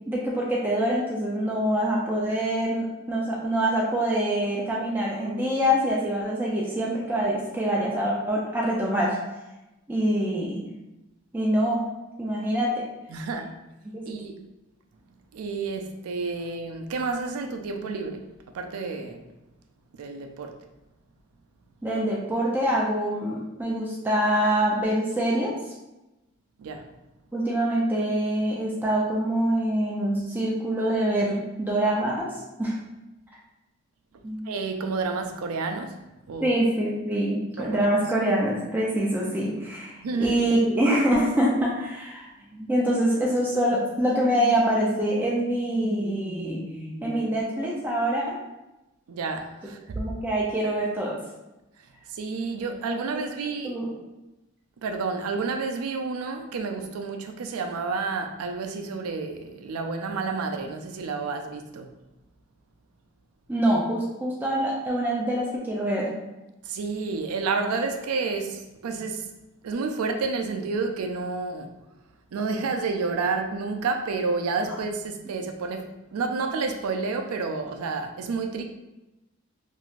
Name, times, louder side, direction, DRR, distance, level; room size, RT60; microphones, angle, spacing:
voice 1, 0.1-9.2 9.9-10.6 11.3-11.9 12.2-12.7 13.9-14.1 21.8-25.5 27.3-32.3 32.6-32.7 34.2-34.4 36.4-39.9 40.2-48.4 50.0-51.2 53.1-53.2 53.6-53.9 63.5-66.1, right 1 dB, 10° right, -5 dB, 0.4 m, -25 dB
voice 2, 13.1-13.6 14.1-14.3 15.3-18.3 18.5-19.2 19.9-20.6 26.6-26.9 34.5-36.0 36.3-36.6 37.6-37.9 40.0-40.4 49.1-50.0 52.1-53.8 54.8-61.9 66.6-69.3 69.6-71.7 72.3-75.9 76.1-78.6, right 4 dB, 90° right, 6 dB, 0.4 m, -30 dB
3.1 x 2.6 x 2.4 m, 0.99 s
head